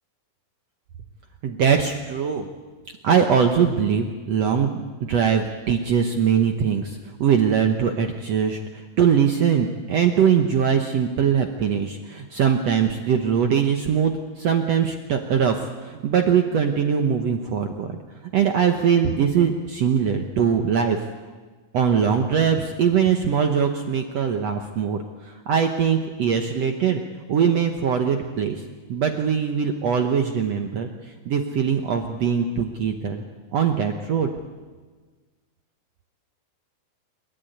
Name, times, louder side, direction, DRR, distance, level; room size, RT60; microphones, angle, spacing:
voice 1, 1.4-2.5 3.0-8.6 9.0-17.9 18.3-21.0 21.7-25.0 25.5-27.0 27.3-28.6 28.9-30.9 31.3-33.2 33.5-34.3, right 7 dB, 85° right, 5 dB, 1.4 m, -21 dB
28.0 x 13.0 x 9.3 m, 1.4 s
omnidirectional pair, 4.6 m